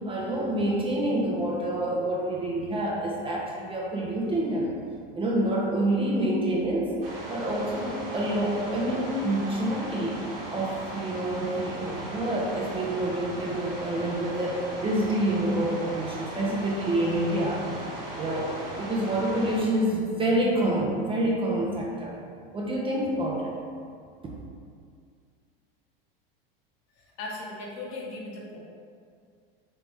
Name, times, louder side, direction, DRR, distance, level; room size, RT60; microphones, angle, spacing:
voice 1, 0.0-4.7 5.2-6.9 7.3-10.2 10.5-17.6 18.2-22.1 22.5-23.5, right 1 dB, 20° right, -3 dB, 0.5 m, -27 dB
sound 1, 7.0-19.6, right 1 dB, 70° right, 1.0 m, -37 dB
voice 2, 27.0-28.6, left 2 dB, 55° left, -3 dB, 1.0 m, -38 dB
3.2 x 2.8 x 3.5 m, 2.2 s
hypercardioid pair, 100°, 29 cm